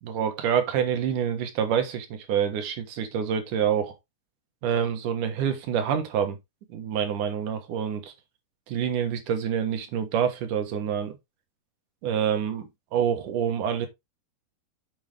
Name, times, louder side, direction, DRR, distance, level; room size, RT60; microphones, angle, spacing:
voice 1, 0.0-3.9 4.6-6.4 6.7-8.1 8.7-11.2 12.0-13.9, right 8 dB, 60° right, 2.6 m, -27 dB
7.2 x 7.2 x 3.4 m
omnidirectional pair, 4.7 m